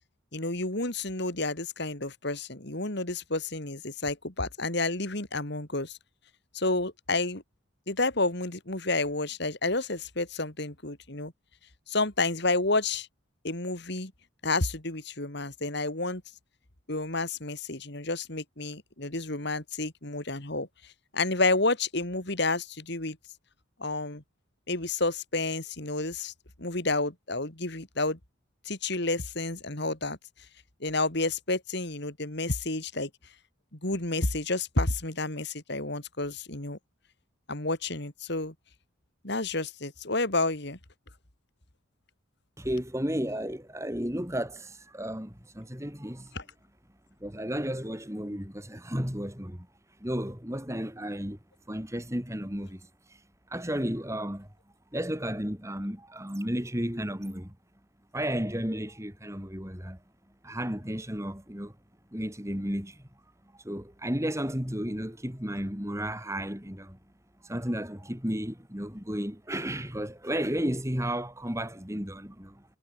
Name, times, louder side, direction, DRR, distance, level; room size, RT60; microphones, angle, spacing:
voice 1, 0.3-6.0 6.5-7.4 7.9-11.3 11.9-13.1 13.4-14.1 14.4-16.2 16.9-23.2 23.8-24.2 24.7-26.3 26.6-28.2 28.6-30.2 30.8-33.1 33.7-36.8 37.5-38.5 39.2-40.8 46.3-46.4, left 2 dB, 55° left, 2.9 m, -30 dB
voice 2, 42.6-46.4 47.2-49.7 50.0-51.4 51.7-52.9 53.5-54.5 54.9-57.6 58.1-60.0 60.4-61.7 62.1-63.0 63.6-67.0 67.4-72.6, equal, 15° right, 3.8 m, -33 dB
head